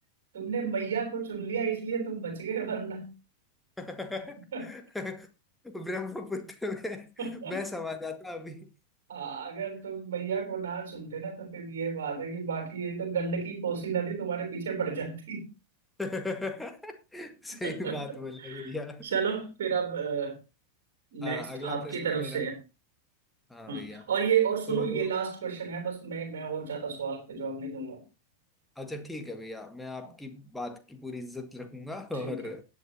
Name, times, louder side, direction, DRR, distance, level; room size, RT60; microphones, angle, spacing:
voice 1, 0.3-3.1 4.5-4.7 7.2-7.6 9.1-15.5 17.5-18.0 18.4-18.7 19.0-20.4 21.1-22.6 23.7-28.0 32.2-32.4, right 6 dB, 55° right, 3.6 m, -32 dB
voice 2, 3.8-5.3 5.6-8.7 16.0-19.1 21.2-22.4 23.5-24.1 24.7-25.1 28.8-32.6, left 2 dB, 5° left, 1.8 m, -37 dB
20.5 x 8.3 x 2.9 m
figure-of-eight pair, 90°, 0 cm